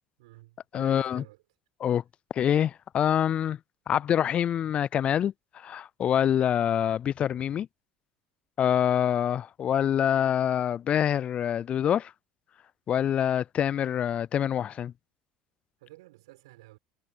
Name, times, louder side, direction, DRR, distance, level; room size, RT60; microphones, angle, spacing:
voice 1, 0.2-1.4 15.8-16.8, right 19 dB, 80° right, 5.0 m, -51 dB
voice 2, 0.7-1.2 1.8-2.0 2.3-3.6 3.9-7.7 8.6-12.1 12.9-14.9, left 9 dB, 45° left, 0.3 m, -26 dB
hypercardioid pair, 75°, 3 cm